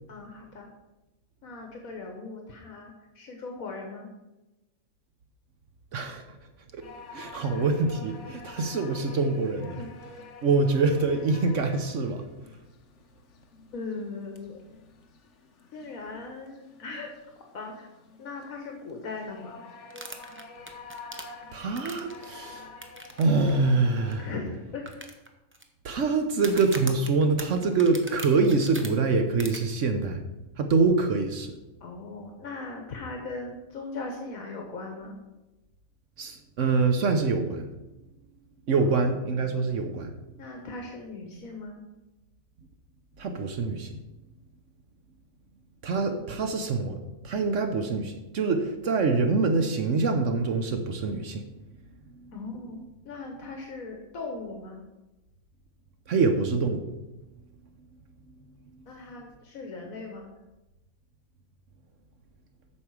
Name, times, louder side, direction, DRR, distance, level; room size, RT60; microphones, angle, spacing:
voice 1, 0.1-0.7 1.4-4.1 9.8-9.9 13.7-14.6 15.7-17.1 17.5-17.9 18.2-19.6 24.2-24.9 31.8-35.2 38.8-39.1 40.4-41.8 46.0-46.3 52.3-52.8 53.0-54.8 58.9-60.3, left 3 dB, 75° left, 2 dB, 1.5 m, -39 dB
voice 2, 5.9-6.2 6.7-6.9 7.1-9.8 10.4-12.2 21.5-22.7 23.2-24.3 25.8-30.2 30.6-31.5 36.2-37.7 38.7-40.2 43.2-44.0 45.8-47.0 47.2-51.4 52.1-52.3 56.1-56.9 58.3-59.0, right 4 dB, 65° right, 6 dB, 1.1 m, -25 dB
sound 1, 6.8-24.4, left 4 dB, 60° left, 1.2 m, -48 dB
sound 2, 19.9-22.3 22.8-23.2 23.5-23.6 24.1-24.2 24.9-25.6 26.3-28.9 29.4-29.6, right 1 dB, 15° right, 0.6 m, -40 dB
8.5 x 6.4 x 4.7 m, 1.0 s
omnidirectional pair, 1.5 m